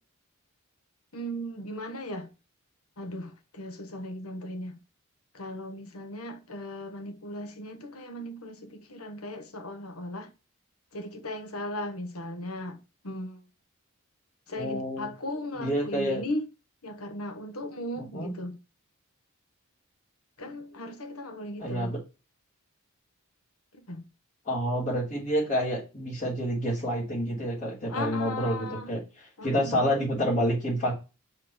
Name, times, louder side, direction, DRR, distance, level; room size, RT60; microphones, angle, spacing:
voice 1, 1.1-2.3 3.0-4.8 5.3-10.3 10.9-12.8 13.0-13.5 14.5-16.5 16.8-18.6 20.4-21.9 23.7-24.0 27.9-28.9 29.4-30.0, left 1 dB, 80° left, 1.5 m, -37 dB
voice 2, 14.6-15.1 15.6-16.2 18.0-18.3 21.6-22.0 24.5-31.0, equal, 35° left, 3.9 m, -28 dB
5.9 x 4.7 x 6.1 m
head